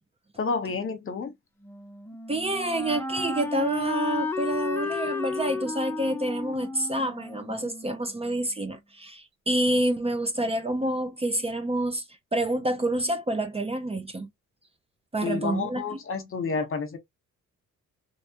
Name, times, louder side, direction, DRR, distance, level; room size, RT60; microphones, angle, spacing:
voice 1, 0.4-1.3 15.2-17.0, left 4 dB, 45° left, 1.2 m, -30 dB
Wind instrument woodwind instrument, 1.6-8.5, left 3 dB, 10° left, 1.0 m, -33 dB
voice 2, 2.3-12.0 12.3-14.3 15.1-16.0, right 1 dB, 20° right, 0.7 m, -28 dB
3.2 x 3.1 x 2.9 m
cardioid pair, 90°, 30 cm